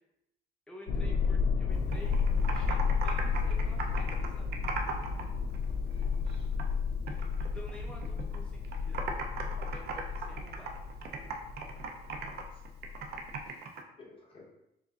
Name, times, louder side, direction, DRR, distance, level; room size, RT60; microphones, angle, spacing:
voice 1, 0.7-4.6 7.1-9.2 9.6-10.8 13.4-13.7, left 1 dB, 5° left, -3 dB, 0.7 m, -51 dB
sound 1, 0.9-13.4, left 5 dB, 85° left, 0.4 m, -32 dB
Computer keyboard, 1.7-5.2 5.5-6.8 7.1-8.4 8.6-13.8, right 5 dB, 75° right, 0.6 m, -38 dB
voice 2, 5.6-6.5 12.1-12.6 14.0-14.6, left 2 dB, 35° left, -3 dB, 1.0 m, -55 dB
6.9 x 2.5 x 2.4 m, 0.87 s
cardioid pair, 165°, 17 cm